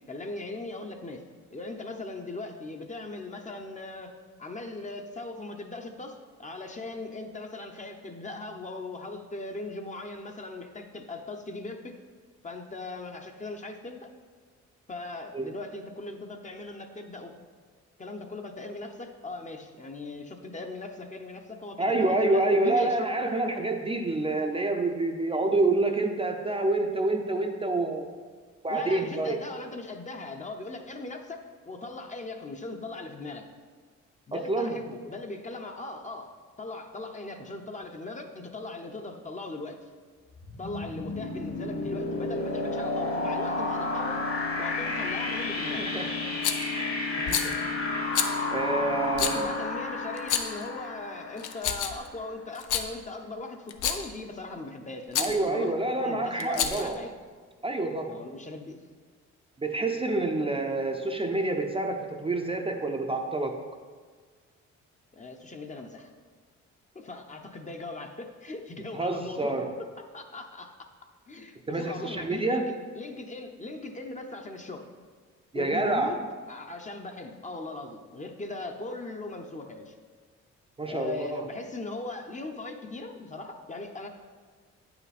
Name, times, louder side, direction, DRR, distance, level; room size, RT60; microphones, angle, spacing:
voice 1, 0.1-1.2 1.5-4.1 4.4-12.0 12.4-14.1 14.9-17.3 18.0-23.0 28.7-33.5 34.3-36.3 36.6-39.8 40.6-44.2 44.6-45.9 49.2-57.1 58.1-58.8 65.1-66.1 66.9-69.6 70.1-70.9 71.3-74.9 75.5-79.9 80.9-84.1, left 2 dB, 25° left, 4 dB, 0.8 m, -39 dB
voice 2, 21.8-28.1 28.6-29.4 34.3-34.8 45.6-46.1 46.7-47.5 47.9-48.2 48.5-49.5 55.2-57.0 57.6-58.2 59.6-63.6 68.9-69.7 71.7-72.6 75.5-76.2 80.8-81.4, right 2 dB, 20° right, 3 dB, 0.6 m, -28 dB
sound 1, 40.3-52.0, left 3 dB, 50° left, 1.7 m, -31 dB
Rattle, 46.4-46.7 47.2-47.5 48.1-48.3 49.1-49.4 50.2-50.6 51.4-52.1 52.5-52.9 53.7-54.1 55.1-55.4 56.4-56.9, left 8 dB, 80° left, 0.7 m, -28 dB
8.6 x 5.8 x 4.2 m, 1.5 s
cardioid pair, 90°, 30 cm